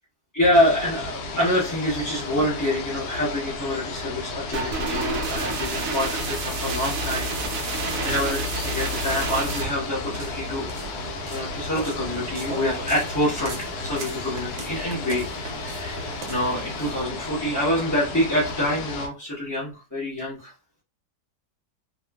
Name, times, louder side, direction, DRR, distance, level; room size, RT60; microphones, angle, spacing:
voice 1, 0.3-7.3 7.7-10.7 11.3-13.6 13.8-20.5, left 1 dB, 20° left, -9 dB, 0.5 m, -26 dB
sound 1, 0.5-19.1, left 3 dB, 75° left, 1.1 m, -34 dB
sound 2, 4.5-9.7, right 2 dB, 70° right, 0.9 m, -29 dB
sound 3, 8.0-17.0, right 2 dB, 85° right, 1.3 m, -39 dB
2.9 x 2.4 x 2.2 m, 0.31 s
omnidirectional pair, 1.8 m